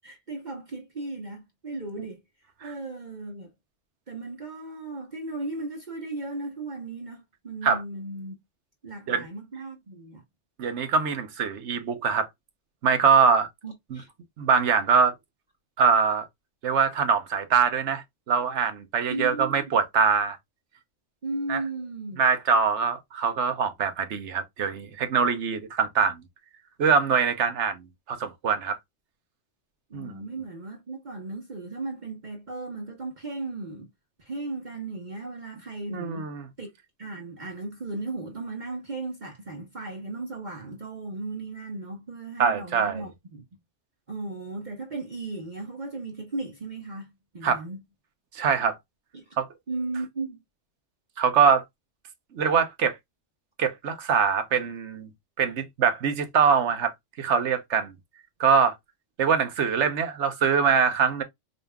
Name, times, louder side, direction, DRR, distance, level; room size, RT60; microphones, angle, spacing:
voice 1, 0.0-2.2 2.6-3.5 4.1-8.3 8.8-10.2 13.6-14.1 19.1-19.7 21.2-22.2 29.9-33.9 34.2-36.3 36.6-36.7 37.0-43.4 44.1-47.8 49.1-49.2 49.7-50.4, right 2 dB, 40° right, 1.1 m, -36 dB
voice 2, 10.6-12.3 12.8-13.5 13.9-14.0 14.4-15.1 15.8-16.3 16.6-20.4 21.5-21.6 22.2-26.2 26.8-27.8 28.1-28.8 29.9-30.2 35.9-36.5 42.4-43.0 47.4-47.6 48.3-48.8 49.4-49.5 51.2-51.6 52.3-53.0 53.6-55.1 55.4-57.9 58.4-58.7 59.2-61.2, right 6 dB, 70° right, 1.1 m, -23 dB
5.1 x 3.0 x 2.2 m
omnidirectional pair, 1.3 m